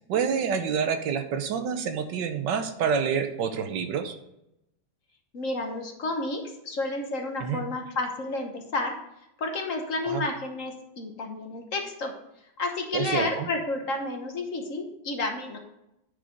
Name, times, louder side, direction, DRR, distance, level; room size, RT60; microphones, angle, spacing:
voice 1, 0.1-4.2 7.4-7.6 10.1-10.2 12.9-13.5, right 7 dB, 70° right, 8 dB, 1.4 m, -27 dB
voice 2, 5.3-9.0 9.4-12.1 12.6-15.6, left 2 dB, 45° left, 3 dB, 1.3 m, -31 dB
9.6 x 4.9 x 5.2 m, 0.85 s
omnidirectional pair, 2.2 m